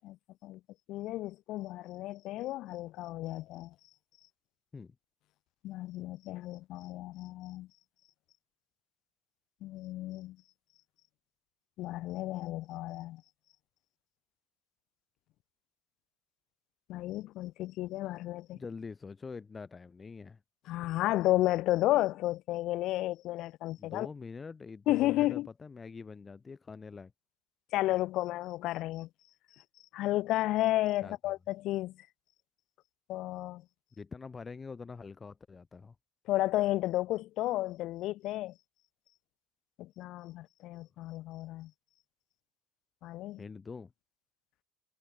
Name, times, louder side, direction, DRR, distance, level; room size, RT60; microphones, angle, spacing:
voice 1, 0.9-3.7 5.6-7.7 9.6-10.4 11.8-13.2 16.9-18.6 20.7-24.1 24.9-25.5 27.7-29.1 29.9-31.9 33.1-33.6 36.3-38.5 39.8-41.7 43.0-43.4, left 16 dB, 60° left, 0.4 m, -32 dB
voice 2, 18.5-20.4 23.8-27.1 31.0-31.3 34.0-36.0 43.4-43.9, left 4 dB, 25° left, 0.8 m, -45 dB
supercardioid pair, 100°, 0 cm